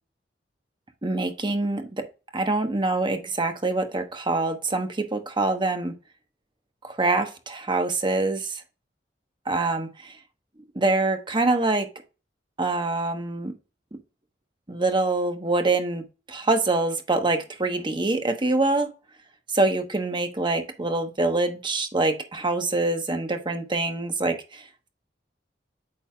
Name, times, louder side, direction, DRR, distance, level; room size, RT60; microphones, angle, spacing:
voice 1, 1.0-2.1 2.3-5.9 6.8-8.6 9.5-10.1 10.7-11.9 12.6-13.5 14.7-16.0 16.3-18.9 19.5-24.6, right 2 dB, 25° right, 6 dB, 1.1 m, -25 dB
8.8 x 5.5 x 2.3 m, 0.32 s
head